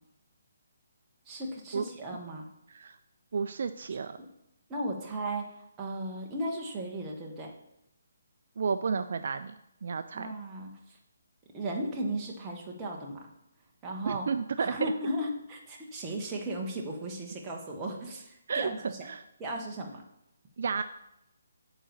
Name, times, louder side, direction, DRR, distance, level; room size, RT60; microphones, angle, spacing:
voice 1, 1.3-2.5 4.2-4.3 4.7-7.5 10.1-11.0 11.5-13.3 13.8-14.3 14.6-19.0 19.4-20.0, right 1 dB, 10° right, -2 dB, 1.0 m, -36 dB
voice 2, 3.3-4.2 8.6-9.5 9.8-10.3 14.1-14.9 18.5-19.2 20.6-20.8, right 5 dB, 50° right, 10 dB, 0.3 m, -32 dB
8.7 x 4.0 x 6.8 m, 0.83 s
hypercardioid pair, 170°, 0 cm